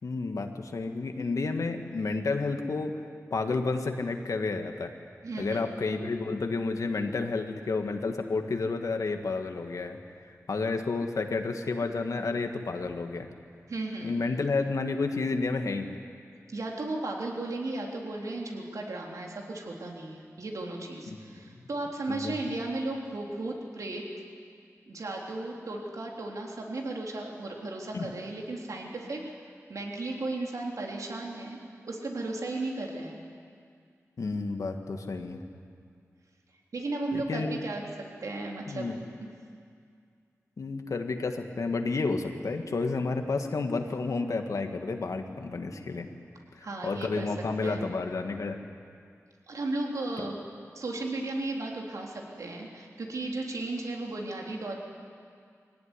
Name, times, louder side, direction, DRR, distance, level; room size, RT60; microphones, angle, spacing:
voice 1, 0.0-3.0 3.3-4.9 5.4-10.0 10.5-13.3 14.0-16.0 21.1-21.5 22.1-22.6 27.9-28.1 34.2-35.4 37.1-37.6 38.7-39.0 40.6-46.1 46.5-48.6, left 3 dB, 75° left, 5 dB, 1.8 m, -31 dB
voice 2, 5.2-5.6 13.7-14.2 16.5-24.0 24.9-29.2 29.7-31.6 31.8-33.2 36.7-37.8 38.2-38.9 39.2-39.3 46.6-47.3 47.6-47.8 49.5-50.4 50.7-54.7, right 2 dB, 80° right, -1 dB, 3.5 m, -35 dB
23.0 x 17.5 x 9.9 m, 2.2 s
wide cardioid pair, 75°, 6 cm